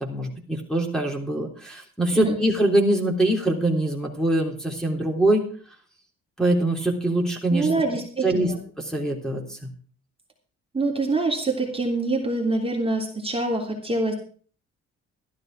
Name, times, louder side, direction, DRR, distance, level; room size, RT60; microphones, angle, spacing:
voice 1, 0.0-5.4 6.4-7.7 8.2-8.5 8.8-9.7, right 1 dB, ahead, -2 dB, 3.4 m, -23 dB
voice 2, 7.5-8.6 10.7-14.1, right 2 dB, 20° right, 0 dB, 3.3 m, -25 dB
13.0 x 11.0 x 4.9 m, 0.43 s
cardioid pair, 90°, 30 cm